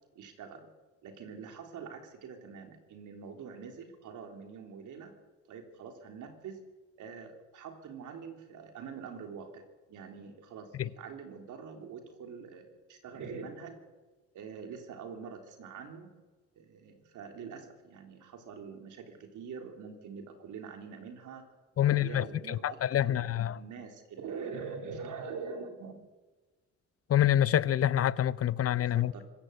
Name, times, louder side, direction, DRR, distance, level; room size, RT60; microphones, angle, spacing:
voice 1, 0.2-0.7 1.0-5.1 5.5-6.6 7.0-13.8 14.3-16.1 16.6-21.5 21.8-26.0 28.9-29.2, right 5 dB, 80° right, 3.5 m, -44 dB
voice 2, 21.8-23.6 27.1-29.1, left 11 dB, 50° left, 0.7 m, -27 dB
25.0 x 14.5 x 8.2 m
cardioid pair, 90°, 30 cm